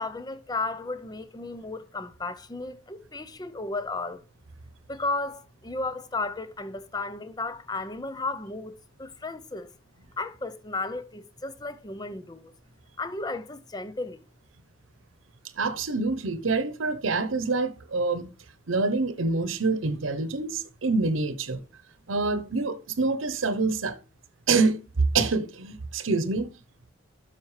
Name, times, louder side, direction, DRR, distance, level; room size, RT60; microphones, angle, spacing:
voice 1, 0.0-4.2 4.9-8.7 9.0-9.7 10.2-12.5 13.0-14.2, left 3 dB, 20° left, 0.6 m, -34 dB
voice 2, 15.6-18.3 18.7-21.6 22.1-24.0 24.5-26.6, right 3 dB, 85° right, 0.8 m, -26 dB
12.0 x 5.8 x 3.2 m
head